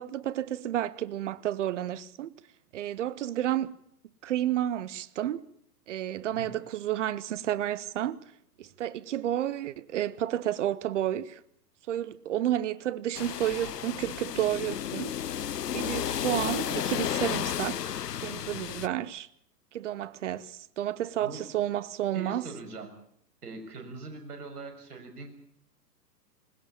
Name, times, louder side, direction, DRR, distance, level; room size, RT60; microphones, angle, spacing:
voice 1, 0.0-2.3 2.7-3.8 4.2-5.4 5.9-8.2 8.6-11.4 11.9-15.1 15.7-19.3 19.7-22.5, right 12 dB, 45° right, 1.1 m, -31 dB
sound 1, 13.1-18.9, left 10 dB, 70° left, 0.8 m, -33 dB
voice 2, 22.1-22.9 23.4-25.3, right 3 dB, 65° right, 6.3 m, -42 dB
20.5 x 19.5 x 8.8 m
figure-of-eight pair, 115°, 49 cm